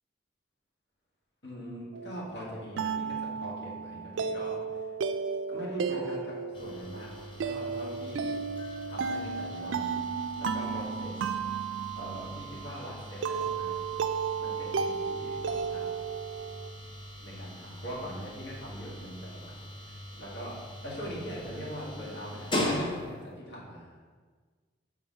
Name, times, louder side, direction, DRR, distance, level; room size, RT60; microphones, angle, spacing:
voice 1, 1.4-4.9 5.5-8.3 8.9-10.1 10.3-11.3 11.9-14.0 14.4-15.9 17.2-20.6 20.8-24.0, equal, 65° left, -5 dB, 1.9 m, -42 dB
sound 1, 1.9-16.7, right 5 dB, 80° right, 0.3 m, -34 dB
sound 2, 6.5-23.4, left 1 dB, 25° left, 0.7 m, -40 dB
5.6 x 3.5 x 5.5 m, 1.5 s
head